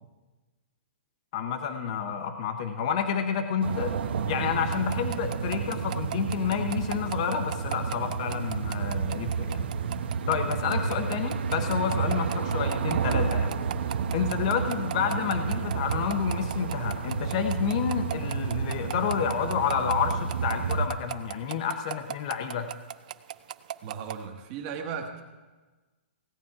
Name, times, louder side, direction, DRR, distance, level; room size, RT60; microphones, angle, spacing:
voice 1, 1.3-3.9 4.3-9.7 10.3-13.6 14.1-22.7, left 7 dB, 35° left, 7 dB, 0.7 m, -29 dB
sound 1, 3.6-20.9, right 6 dB, 60° right, 0.9 m, -30 dB
sound 2, 4.7-24.2, right 11 dB, 40° right, 0.4 m, -37 dB
voice 2, 23.8-25.2, right 6 dB, 25° right, 2 dB, 1.2 m, -36 dB
16.5 x 9.0 x 4.8 m, 1.3 s
hypercardioid pair, 175°, 6 cm